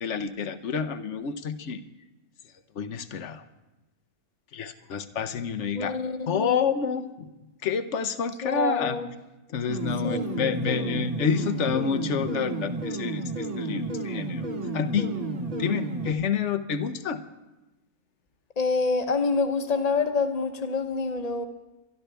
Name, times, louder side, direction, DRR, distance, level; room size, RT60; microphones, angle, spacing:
voice 1, 0.0-1.8 2.8-3.4 4.5-6.0 6.3-7.3 7.6-9.0 9.5-14.5 14.7-15.1 15.6-17.2, left 7 dB, 55° left, 11 dB, 1.0 m, -29 dB
voice 2, 5.7-6.6 8.4-9.1 10.0-10.9 18.6-21.5, left 4 dB, 30° left, 6 dB, 1.0 m, -27 dB
sound 1, 9.7-16.1, right 2 dB, 30° right, 1.0 m, -32 dB
24.5 x 12.0 x 3.4 m, 1.0 s
omnidirectional pair, 1.6 m